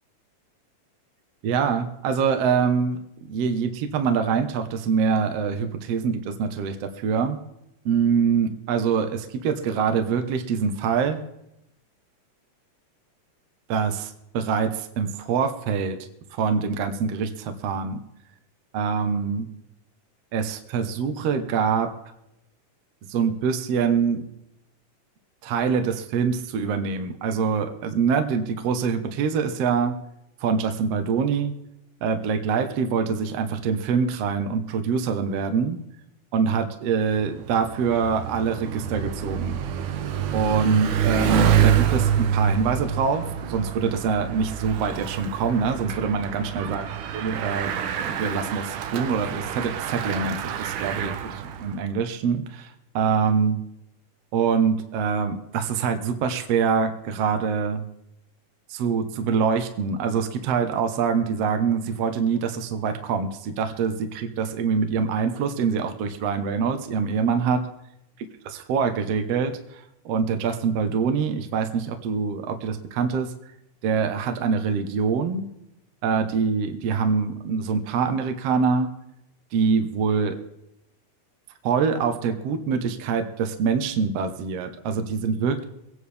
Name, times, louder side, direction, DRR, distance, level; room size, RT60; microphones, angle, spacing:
voice 1, 1.4-3.0 3.3-7.4 7.9-11.2 13.7-16.0 16.3-18.0 18.7-19.5 20.3-21.9 23.1-24.2 25.4-30.0 30.4-31.5 32.0-35.8 36.3-39.6 40.3-46.8 47.1-47.7 48.0-53.6 54.3-57.8 58.7-67.6 68.5-73.3 73.8-75.5 76.0-78.9 79.5-80.3 81.6-85.6, right 6 dB, 60° right, 7 dB, 1.8 m, -24 dB
Bicycle, 37.2-51.8, right 9 dB, 85° right, 2.5 m, -26 dB
24.0 x 9.7 x 3.4 m, 0.84 s
omnidirectional pair, 3.7 m